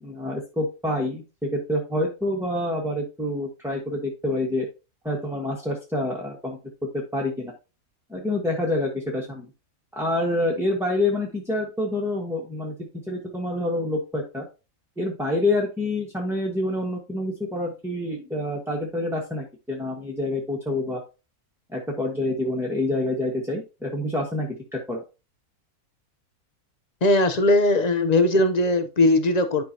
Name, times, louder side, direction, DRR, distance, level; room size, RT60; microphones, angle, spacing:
voice 1, 0.0-4.7 5.0-6.6 7.1-7.5 8.1-9.5 9.9-12.7 13.1-14.5 15.0-21.0 21.7-25.0, left 1 dB, ahead, 1.2 m, -27 dB
voice 2, 27.0-29.6, left 2 dB, 45° left, 0.5 m, -19 dB
10.5 x 5.4 x 2.8 m
omnidirectional pair, 1.6 m